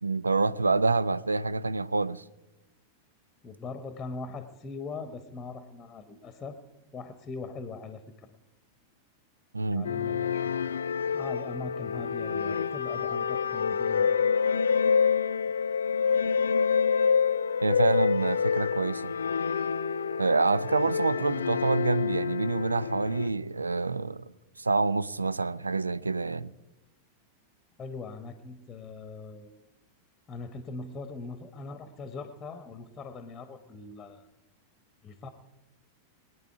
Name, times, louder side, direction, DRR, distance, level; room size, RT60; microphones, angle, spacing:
voice 1, 0.0-2.2 9.5-9.9 17.6-19.1 20.2-24.2 24.6-26.5, right 3 dB, 80° right, 0.4 m, -27 dB
voice 2, 3.4-6.6 6.9-8.3 9.7-10.6 11.1-14.1 27.8-29.5 30.3-34.3 35.0-35.3, left 3 dB, 15° left, 1.2 m, -41 dB
sound 1, 9.8-23.3, left 6 dB, 70° left, 0.4 m, -27 dB
22.5 x 9.4 x 4.7 m
figure-of-eight pair, 90°, 0 cm